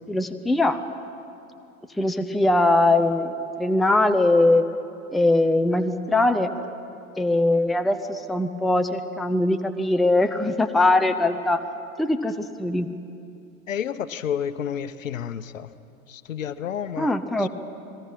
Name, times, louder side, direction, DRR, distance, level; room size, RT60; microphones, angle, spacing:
voice 1, 0.1-0.8 2.0-3.3 3.6-4.6 5.1-6.5 7.2-11.6 12.0-12.9 17.0-17.5, left 2 dB, ahead, 7 dB, 0.6 m, -21 dB
voice 2, 13.7-15.7 16.1-17.5, left 8 dB, 65° left, 14 dB, 1.0 m, -31 dB
29.0 x 20.5 x 5.8 m, 2.6 s
figure-of-eight pair, 90°, 42 cm